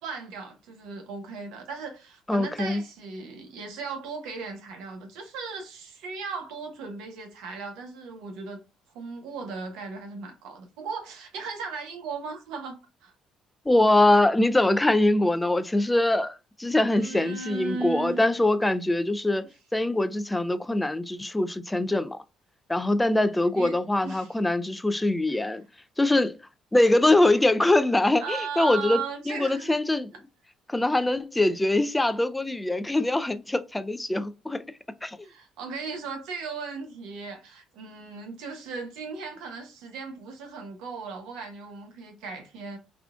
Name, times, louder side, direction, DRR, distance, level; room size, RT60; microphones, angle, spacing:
voice 1, 0.0-8.6 8.9-13.1 17.0-18.3 23.6-24.3 25.3-25.4 28.2-29.7 35.2-42.8, right 4 dB, 85° right, 0.8 m, -37 dB
voice 2, 2.3-2.8 13.7-22.2 22.7-25.6 26.0-26.4 26.7-30.1 30.7-34.6 35.0-35.3, left 2 dB, 10° left, 0.3 m, -23 dB
3.6 x 2.3 x 2.4 m
cardioid pair, 95°, 0 cm